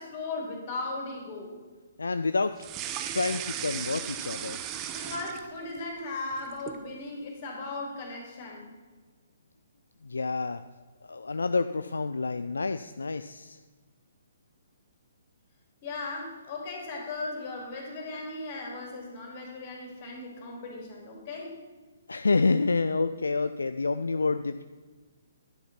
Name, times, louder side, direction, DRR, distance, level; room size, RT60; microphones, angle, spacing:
voice 1, 0.0-1.6 4.9-8.7 15.8-21.6, left 3 dB, 40° left, 0 dB, 3.2 m, -37 dB
voice 2, 2.0-2.6 3.1-4.6 10.0-10.6 11.1-13.6 22.1-24.6, left 3 dB, 70° left, 10 dB, 0.4 m, -28 dB
sound 1, 2.6-5.8 6.2-6.9, right 10 dB, 25° right, 0.7 m, -36 dB
11.0 x 6.7 x 5.8 m, 1.4 s
figure-of-eight pair, 130°, 0 cm